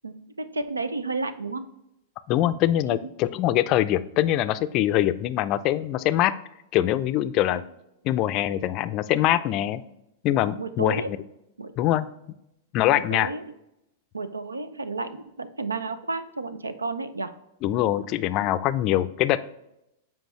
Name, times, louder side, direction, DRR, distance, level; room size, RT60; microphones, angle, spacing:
voice 1, 0.0-1.7 2.9-3.1 7.5-7.6 10.6-11.1 11.6-11.7 12.9-13.5 14.1-17.3, right 3 dB, 90° right, 12 dB, 0.5 m, -32 dB
voice 2, 2.3-6.3 6.7-7.6 8.0-9.8 10.2-11.0 11.8-12.1 12.7-13.3 17.6-19.4, left 13 dB, 40° left, 13 dB, 0.4 m, -23 dB
7.7 x 4.5 x 3.1 m, 0.85 s
hypercardioid pair, 100°, 0 cm